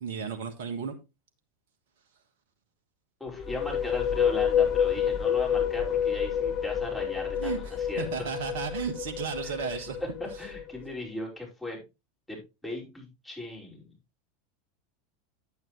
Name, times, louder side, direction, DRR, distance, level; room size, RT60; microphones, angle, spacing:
voice 1, 0.0-0.9 7.4-10.0, right 6 dB, 65° right, 1.4 m, -34 dB
voice 2, 3.2-8.0 9.4-11.8 12.3-14.0, left 2 dB, 5° left, 5.3 m, -38 dB
sound 1, 3.3-10.9, left 8 dB, 45° left, 0.8 m, -28 dB
9.3 x 9.0 x 3.1 m
hypercardioid pair, 85°, 0 cm